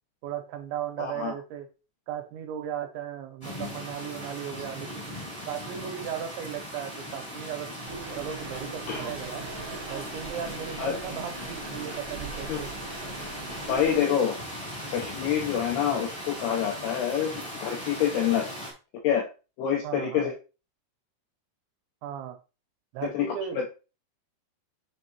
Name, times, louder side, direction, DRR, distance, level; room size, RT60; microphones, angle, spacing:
voice 1, 0.2-1.7 2.1-5.2 5.5-7.7 8.2-9.4 9.9-12.7 19.8-20.3 22.0-22.4 22.9-23.6, right 9 dB, 85° right, 5 dB, 2.9 m, -36 dB
voice 2, 1.0-1.3 8.9-9.1 10.8-10.9 12.5-12.6 13.7-14.4 14.9-17.3 17.6-18.5 19.0-19.3 19.6-20.3 23.0-23.3, left 9 dB, 90° left, 0 dB, 2.3 m, -26 dB
sound 1, 3.4-18.7, equal, 40° left, 0.4 m, -38 dB
sound 2, 7.9-14.0, right 4 dB, 65° right, 1.4 m, -41 dB
9.4 x 3.6 x 2.9 m, 0.32 s
omnidirectional pair, 5.4 m